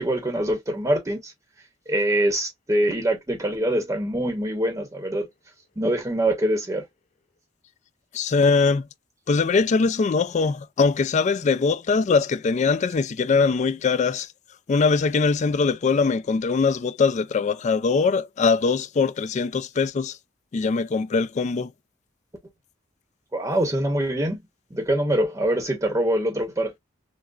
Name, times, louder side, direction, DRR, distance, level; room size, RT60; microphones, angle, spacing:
voice 1, 0.0-1.3 1.9-5.3 5.8-6.8 23.3-24.4 24.7-26.7, right 1 dB, 20° right, 0.8 m, -24 dB
voice 2, 8.1-8.8 9.3-14.3 14.7-20.2 20.5-21.7, left 4 dB, 40° left, 0.3 m, -22 dB
6.0 x 2.0 x 2.4 m
head